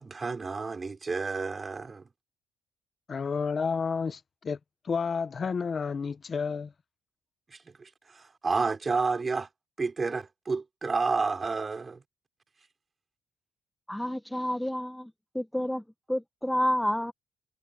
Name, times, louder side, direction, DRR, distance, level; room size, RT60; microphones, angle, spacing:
voice 1, 0.0-2.1 7.5-9.5 9.8-12.0, right 4 dB, 30° right, 4.7 m, -30 dB
voice 2, 3.1-4.6 4.8-6.7, left 5 dB, 40° left, 0.9 m, -30 dB
voice 3, 13.9-17.1, left 1 dB, 5° left, 0.9 m, -30 dB
cardioid pair, 90°, 0 cm